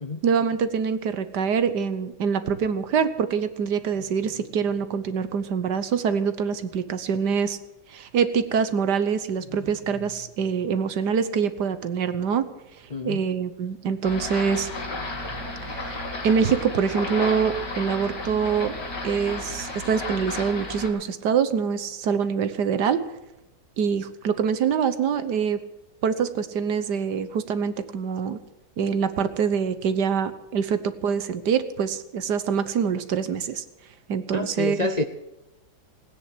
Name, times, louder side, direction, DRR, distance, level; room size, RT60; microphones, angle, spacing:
voice 1, 0.2-7.6 7.9-12.5 13.0-14.7 15.7-16.0 16.2-18.7 19.0-23.0 23.8-25.6 26.0-28.4 28.8-33.6 34.1-34.9, right 6 dB, 75° right, 12 dB, 1.7 m, -25 dB
voice 2, 12.9-13.2 34.3-35.0, left 2 dB, 40° left, 7 dB, 0.6 m, -28 dB
sound 1, 14.0-20.9, left 2 dB, 90° left, 3.7 m, -33 dB
17.5 x 9.9 x 7.9 m, 0.95 s
omnidirectional pair, 1.8 m